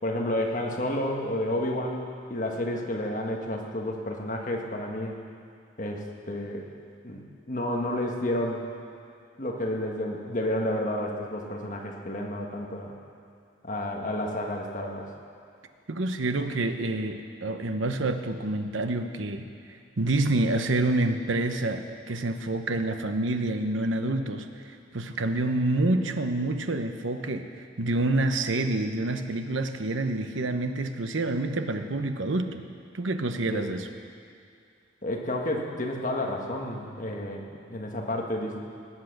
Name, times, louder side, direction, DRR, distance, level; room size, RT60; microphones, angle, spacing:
voice 1, 0.0-2.0 2.3-5.2 5.8-6.6 7.0-7.2 7.5-8.6 9.4-12.9 13.6-15.0 33.5-33.6 35.0-37.4 37.7-38.6, left 1 dB, 40° left, 0 dB, 1.5 m, -30 dB
voice 2, 15.9-19.5 20.0-24.5 24.9-32.6 32.9-33.9, right 2 dB, 80° right, 7 dB, 0.9 m, -27 dB
18.5 x 8.3 x 6.6 m, 2.4 s
head